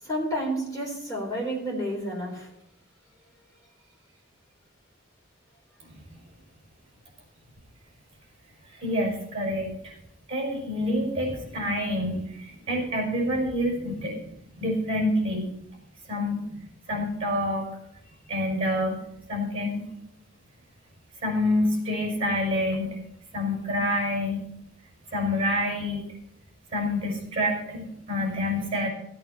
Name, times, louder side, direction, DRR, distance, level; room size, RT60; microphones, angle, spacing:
voice 1, 0.0-2.5, equal, 15° left, -3 dB, 3.8 m, -30 dB
voice 2, 8.8-9.7 10.3-14.2 14.6-15.4 16.1-17.7 18.3-19.0 19.3-19.9 21.2-23.0 23.3-24.4 25.1-26.1 26.7-28.9, left 1 dB, 30° right, 0 dB, 5.4 m, -27 dB
16.0 x 8.7 x 4.3 m, 0.78 s
head